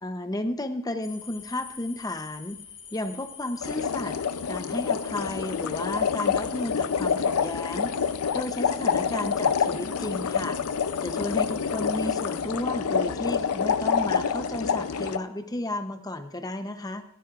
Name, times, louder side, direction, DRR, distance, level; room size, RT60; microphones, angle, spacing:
voice 1, 0.0-2.6 2.9-4.1 4.5-7.9 8.3-10.6 11.0-17.0, left 1 dB, 15° left, 8 dB, 0.7 m, -33 dB
sound 1, 1.0-12.4, left 7 dB, 55° left, 2.6 m, -45 dB
sound 2, 3.6-15.2, left 6 dB, 85° left, 0.5 m, -27 dB
18.5 x 10.5 x 2.5 m, 0.69 s
head